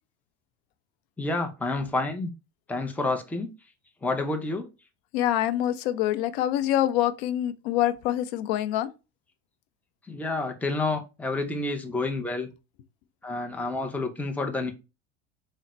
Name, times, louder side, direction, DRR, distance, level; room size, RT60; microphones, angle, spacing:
voice 1, 1.2-2.3 2.7-3.5 4.0-4.7 10.1-12.5 13.2-14.7, left 2 dB, 5° left, 0.7 m, -29 dB
voice 2, 5.1-8.9, left 12 dB, 65° left, 0.6 m, -25 dB
3.8 x 2.1 x 4.2 m
hypercardioid pair, 80°, 33 cm